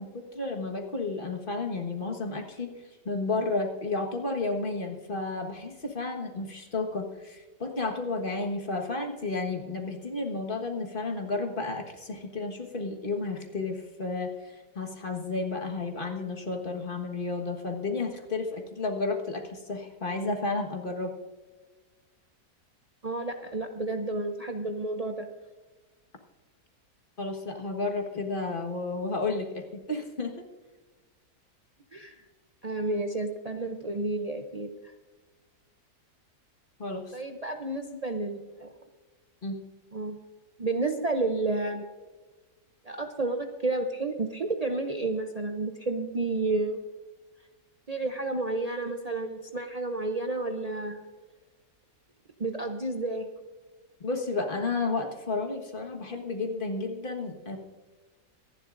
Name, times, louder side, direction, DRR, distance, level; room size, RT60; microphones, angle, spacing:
voice 1, 0.0-2.7 3.0-21.1 27.2-30.4 36.8-37.2 39.4-39.6 54.0-57.6, left 3 dB, 35° left, 3 dB, 1.5 m, -32 dB
voice 2, 23.0-25.3 31.9-32.2 32.6-34.9 37.1-38.7 39.9-40.2 40.6-41.8 42.8-46.8 47.9-51.0 52.4-53.3, right 2 dB, 75° right, 4 dB, 0.3 m, -31 dB
25.0 x 11.0 x 2.6 m, 1.3 s
omnidirectional pair, 1.8 m